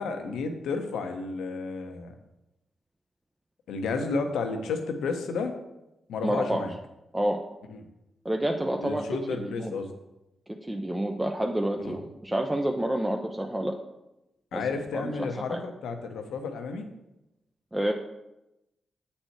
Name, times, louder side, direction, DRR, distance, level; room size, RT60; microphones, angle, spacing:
voice 1, 0.0-2.2 3.7-5.5 6.1-6.7 7.7-7.8 8.8-9.9 11.8-12.0 14.5-16.9, left 4 dB, 80° left, 6 dB, 0.8 m, -32 dB
voice 2, 6.2-6.6 7.1-7.4 8.2-9.0 9.4-9.7 10.6-13.8 14.5-14.6 15.0-15.6 17.7-17.9, right 1 dB, 15° right, 3 dB, 0.7 m, -28 dB
7.7 x 4.2 x 4.5 m, 0.94 s
supercardioid pair, 40°, 0 cm